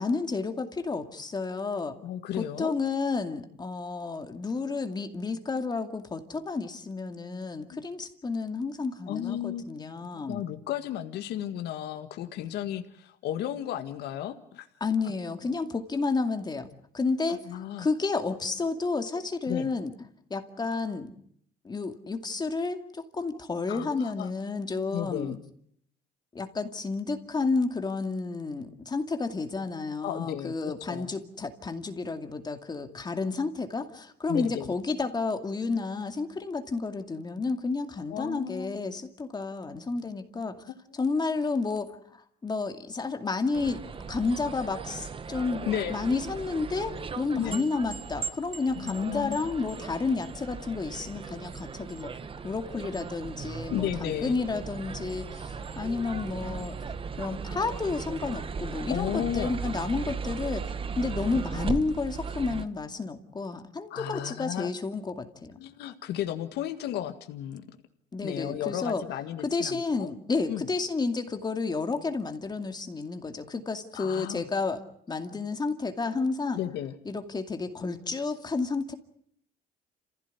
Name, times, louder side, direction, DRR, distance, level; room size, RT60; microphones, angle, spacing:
voice 1, 0.0-2.0 2.3-10.4 14.8-16.7 16.9-17.4 17.8-19.9 20.3-21.1 21.6-25.4 26.3-40.7 40.9-43.8 44.1-52.1 52.4-56.8 57.2-60.7 61.0-65.6 68.1-69.0 69.4-74.8 75.1-76.6 77.1-78.9, left 4 dB, 25° left, 6 dB, 2.3 m, -31 dB
voice 2, 2.0-2.7 7.7-7.8 9.1-9.6 10.0-14.7 17.3-17.9 19.5-19.7 23.7-24.3 24.9-25.4 30.0-31.1 34.3-34.8 38.1-38.8 40.7-41.0 45.7-46.0 47.4-47.7 48.7-49.5 53.7-54.4 58.9-59.6 63.9-64.7 65.6-67.6 68.2-70.1 70.5-70.7 73.9-74.5 76.5-77.0, left 11 dB, 75° left, 7 dB, 1.8 m, -34 dB
sound 1, 43.5-62.6, right 5 dB, 30° right, 1.2 m, -37 dB
28.0 x 16.0 x 9.6 m, 0.68 s
cardioid pair, 110°, 17 cm